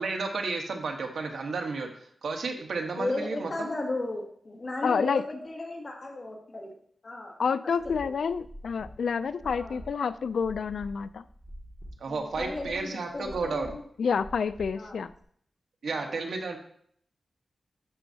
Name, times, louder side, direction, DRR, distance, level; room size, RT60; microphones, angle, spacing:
voice 1, 0.0-3.7 12.0-13.7 15.8-16.6, right 4 dB, 85° right, 3 dB, 1.2 m, -32 dB
voice 2, 3.0-6.7 7.0-7.3 8.0-8.1 9.4-9.8 12.1-13.8 14.7-15.0 15.9-16.2, left 2 dB, 35° left, -1 dB, 2.2 m, -35 dB
voice 3, 4.8-5.2 7.4-11.2 14.0-15.1, left 6 dB, 80° left, 14 dB, 0.3 m, -28 dB
sound 1, 7.8-15.2, equal, 25° right, 1.9 m, -47 dB
12.5 x 5.5 x 2.8 m, 0.63 s
wide cardioid pair, 140°, 0 cm